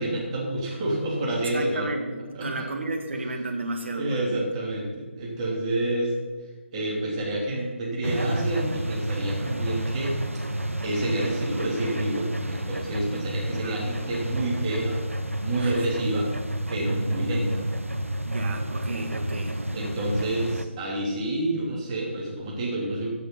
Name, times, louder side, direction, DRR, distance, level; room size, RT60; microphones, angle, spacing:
voice 1, 0.0-1.9 2.3-2.7 3.9-6.1 6.7-10.1 10.8-15.0 15.4-16.3 16.7-17.6 19.3-19.4 19.7-23.1, right 1 dB, 30° right, -4 dB, 3.2 m, -29 dB
voice 2, 1.5-4.5 13.6-13.8 15.6-15.9 18.2-19.6, right 2 dB, 65° right, 4 dB, 1.8 m, -33 dB
sound 1, 8.0-20.6, right 1 dB, 90° right, 0.9 m, -30 dB
14.0 x 6.2 x 5.6 m, 1.4 s
figure-of-eight pair, 145°, 7 cm